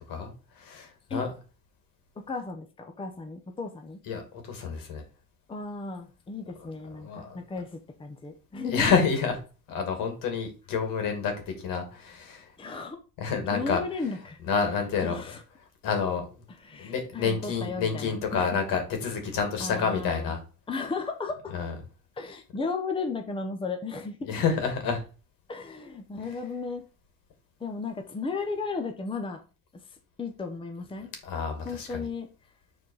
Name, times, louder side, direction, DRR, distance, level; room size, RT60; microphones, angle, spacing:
voice 1, 0.1-1.3 4.1-5.0 7.0-7.4 8.7-9.4 9.7-12.5 13.2-13.8 14.5-15.2 15.8-16.2 16.8-20.4 21.5-21.7 24.2-25.0 31.2-32.1, left 5 dB, 75° left, 5 dB, 2.5 m, -28 dB
voice 2, 2.2-4.0 5.5-8.9 12.6-13.0 13.5-14.4 15.0-15.4 16.6-18.5 19.6-20.3 20.7-21.5 22.2-24.4 25.5-26.8 27.6-29.4 30.2-31.1 31.6-32.3, left 4 dB, 15° left, 5 dB, 0.9 m, -35 dB
7.4 x 4.2 x 4.7 m, 0.35 s
cardioid pair, 150°, 34 cm